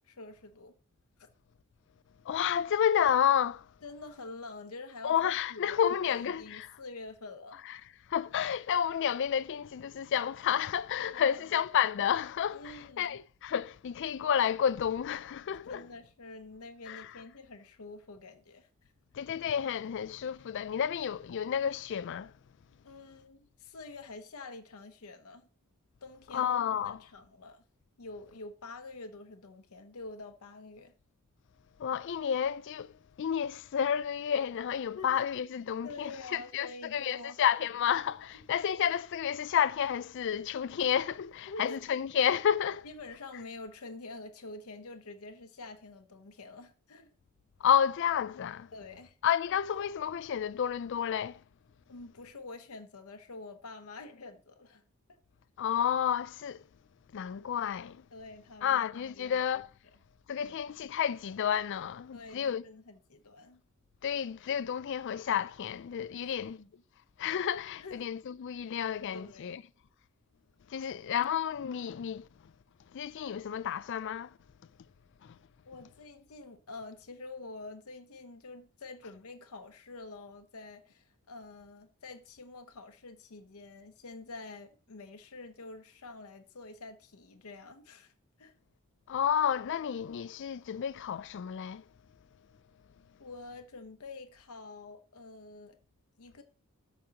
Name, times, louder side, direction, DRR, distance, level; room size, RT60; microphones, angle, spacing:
voice 1, 0.0-0.7 1.2-1.3 3.8-5.2 5.5-5.8 6.1-7.6 11.0-11.6 12.5-13.1 15.7-18.9 22.8-25.5 26.0-26.5 26.8-27.6 28.0-30.9 34.9-35.1 35.8-37.4 38.3-38.4 41.5-41.8 42.8-47.1 48.7-49.2 51.9-54.8 58.1-58.8 59.1-59.4 60.4-60.6 62.1-63.6 66.2-66.7 67.8-68.0 69.1-69.6 70.8-70.9 75.7-88.1 88.4-88.5 93.2-95.8 96.2-96.4, left 3 dB, 75° left, 0.8 m, -47 dB
voice 2, 2.3-3.7 5.0-6.7 7.7-7.8 8.1-15.8 16.9-17.1 19.1-22.3 26.3-27.0 31.8-42.9 47.6-48.7 49.2-51.4 55.6-56.6 57.1-58.1 58.6-59.7 60.3-62.7 64.0-66.6 67.2-69.6 70.7-72.5 72.9-74.4 75.2-75.4 89.1-91.8, left 8 dB, 55° left, 0.3 m, -31 dB
13.0 x 5.2 x 2.9 m
head